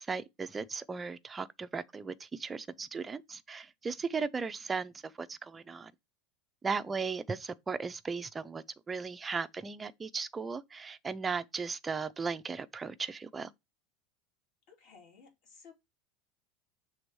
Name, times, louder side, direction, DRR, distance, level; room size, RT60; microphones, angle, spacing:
voice 1, 0.0-5.9 6.6-13.5, right 5 dB, 15° right, 0.4 m, -37 dB
voice 2, 14.7-15.7, left 5 dB, 45° left, 2.6 m, -57 dB
6.6 x 3.4 x 4.6 m
supercardioid pair, 170°, 0 cm